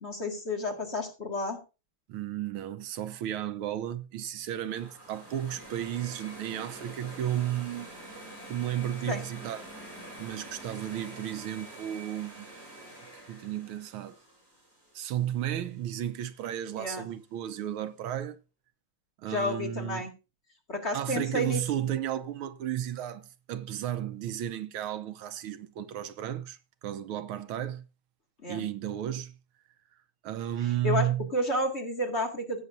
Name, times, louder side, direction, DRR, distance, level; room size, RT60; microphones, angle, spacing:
voice 1, 0.0-1.6 9.1-9.2 16.8-17.1 19.3-20.1 20.7-21.6 28.4-28.6 30.8-32.6, left 1 dB, 30° left, 2.1 m, -31 dB
voice 2, 2.1-7.9 8.5-9.7 10.2-12.5 13.3-14.2 14.9-18.4 19.2-20.0 20.9-27.9 28.5-29.4 30.2-31.3, right 11 dB, 80° right, 1.5 m, -33 dB
sound 1, 4.6-15.7, right 1 dB, 30° right, 6.9 m, -46 dB
16.0 x 8.7 x 2.5 m
omnidirectional pair, 2.4 m